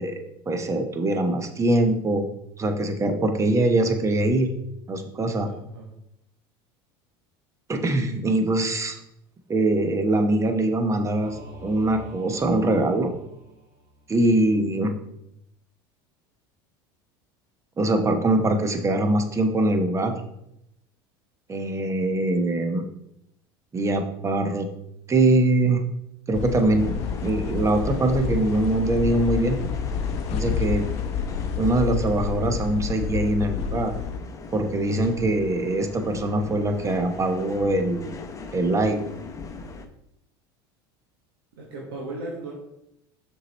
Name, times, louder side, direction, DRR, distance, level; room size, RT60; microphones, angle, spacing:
voice 1, 0.0-2.2 2.6-4.5 4.9-5.5 7.7-9.0 9.5-13.1 14.1-14.9 17.8-20.2 21.5-22.8 23.7-24.7 25.1-25.8 26.3-27.0 27.2-29.6 30.3-30.9 31.6-33.9 34.5-38.0 38.5-39.0, right 2 dB, 25° right, 6 dB, 1.0 m, -23 dB
voice 2, 5.5-5.9 41.6-42.5, right 2 dB, 90° right, -3 dB, 1.4 m, -36 dB
Singing / Musical instrument, 11.2-14.1, right 1 dB, 65° right, 2.0 m, -45 dB
sound 1, 26.3-34.2, left 7 dB, 60° left, 0.7 m, -29 dB
sound 2, 26.8-39.9, left 4 dB, 25° left, 0.8 m, -39 dB
6.2 x 4.7 x 4.2 m, 0.79 s
hypercardioid pair, 90°, 12 cm